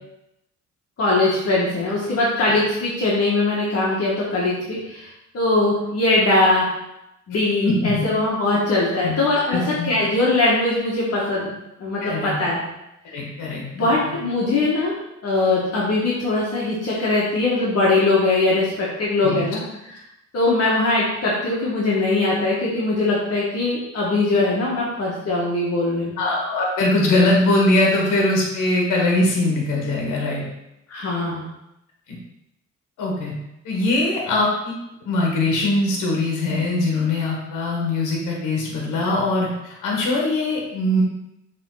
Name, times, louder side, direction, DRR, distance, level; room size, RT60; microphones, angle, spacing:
voice 1, 1.0-5.1 5.3-6.7 7.3-11.5 11.8-12.6 13.7-14.9 15.2-19.6 20.3-26.2 30.9-31.5, left 2 dB, 55° left, -6 dB, 1.8 m, -21 dB
voice 2, 7.6-8.0 9.0-9.2 9.5-9.9 12.0-12.4 13.0-13.9 19.2-19.5 26.2-30.5 32.1-32.2 33.0-33.3 33.6-34.7 35.0-41.0, left 2 dB, 85° left, -1 dB, 1.6 m, -21 dB
6.8 x 3.7 x 3.9 m, 0.86 s
cardioid pair, 90°, 30 cm